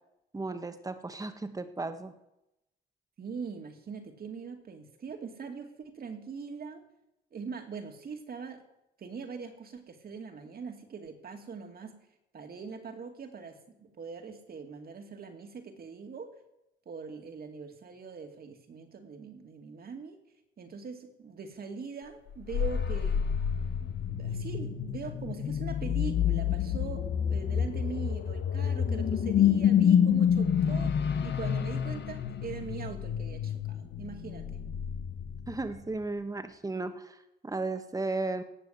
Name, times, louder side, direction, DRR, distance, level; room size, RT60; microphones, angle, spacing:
voice 1, 0.3-2.1 35.5-38.4, right 3 dB, 15° right, 8 dB, 1.5 m, -35 dB
voice 2, 3.2-6.8 7.3-8.6 9.0-12.0 12.3-16.3 16.9-20.2 20.6-23.2 23.8-34.6, right 5 dB, 50° right, 5 dB, 2.5 m, -42 dB
sound 1, 22.3-35.8, left 8 dB, 60° left, 1.1 m, -28 dB
18.0 x 7.0 x 8.2 m, 0.88 s
cardioid pair, 90°, 20 cm